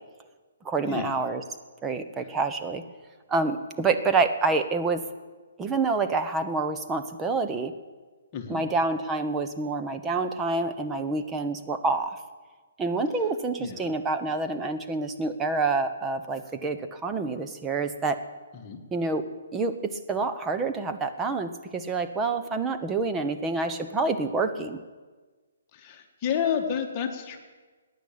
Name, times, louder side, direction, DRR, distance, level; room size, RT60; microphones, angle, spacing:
voice 1, 0.6-1.4 1.8-2.8 3.3-5.0 5.6-7.7 8.5-12.2 12.8-18.2 18.9-19.2 19.5-19.7 20.1-24.8, right 3 dB, 15° right, 7 dB, 1.0 m, -27 dB
voice 2, 8.3-8.6 13.6-13.9 18.5-18.8 25.7-27.4, left 8 dB, 30° left, 3 dB, 1.8 m, -30 dB
16.0 x 10.0 x 8.7 m, 1.3 s
hypercardioid pair, 145°, 0 cm